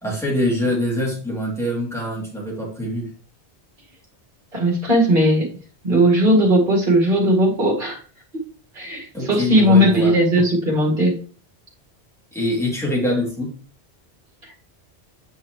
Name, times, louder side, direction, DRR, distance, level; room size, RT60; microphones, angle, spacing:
voice 1, 0.0-3.1 9.1-10.1 12.3-13.5, left 1 dB, ahead, -4 dB, 3.1 m, -24 dB
voice 2, 4.5-5.5 5.8-8.0 8.7-11.2, equal, 50° right, -2 dB, 2.4 m, -17 dB
9.2 x 5.8 x 3.2 m, 0.42 s
omnidirectional pair, 1.1 m